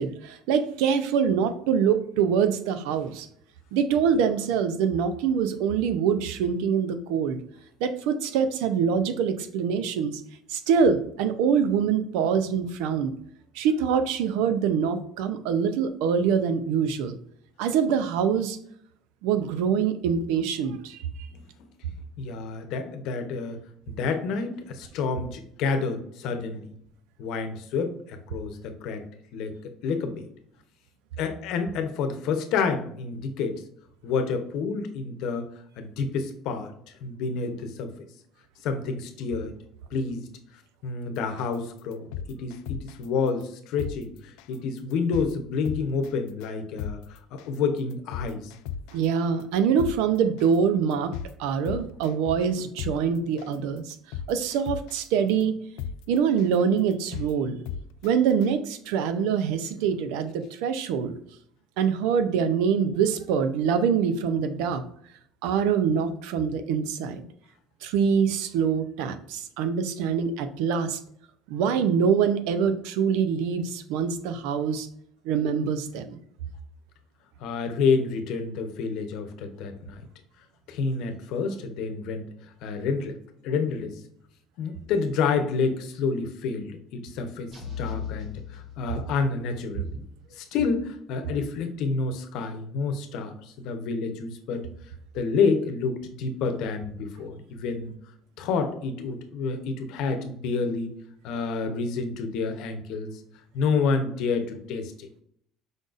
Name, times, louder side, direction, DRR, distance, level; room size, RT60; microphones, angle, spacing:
voice 1, 0.0-3.3 3.7-7.4 7.8-10.2 10.5-13.1 13.5-17.2 17.6-18.6 19.2-21.0 48.9-51.1 51.4-53.9 54.3-55.6 56.1-57.6 58.0-61.1 61.8-64.8 65.4-67.2 67.8-71.0 71.5-74.9 75.2-76.2, right 7 dB, 90° right, 10 dB, 0.5 m, -24 dB
voice 2, 22.2-23.6 23.9-26.7 27.2-29.1 29.3-30.2 31.2-33.6 34.0-35.5 35.8-36.7 37.0-37.9 38.6-39.5 39.9-40.3 40.8-48.5 77.4-80.1 80.7-82.3 82.6-83.2 83.4-84.0 84.6-90.1 90.3-94.7 95.1-97.9 98.4-100.9 101.2-103.1 103.5-105.1, left 5 dB, 65° left, 7 dB, 0.8 m, -29 dB
sound 1, 41.4-41.5 41.9-43.0 43.4-43.5 43.8-43.9 44.4-44.6 44.9-45.3 45.7-46.1 46.4-46.5 46.8-46.9 47.4-47.6 47.9-49.0 49.4-49.5 49.8-49.9 50.4-50.6 50.9-51.3 51.7-52.5 52.8-52.9 53.4-53.5 53.9-55.0 55.4-55.5 55.8-55.9 56.4-56.5 56.9-57.3 57.7-58.1 58.4-58.5, left 8 dB, 85° left, 0.3 m, -34 dB
sound 2, 87.5-89.4, left 8 dB, 50° right, 1.9 m, -38 dB
5.2 x 3.9 x 2.5 m, 0.67 s
cardioid pair, 155°, 0 cm